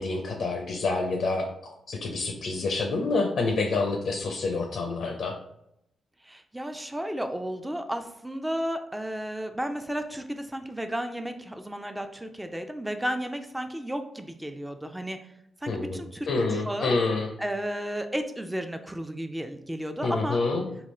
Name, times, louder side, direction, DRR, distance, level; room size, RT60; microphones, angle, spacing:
voice 1, 0.0-1.5 1.9-5.4 15.7-17.3 20.0-20.7, left 3 dB, 70° left, 2 dB, 0.5 m, -27 dB
voice 2, 6.2-15.2 15.6-16.9 17.4-20.4, equal, 10° right, 7 dB, 0.5 m, -33 dB
3.5 x 2.3 x 3.0 m, 0.80 s
supercardioid pair, 50°, 0 cm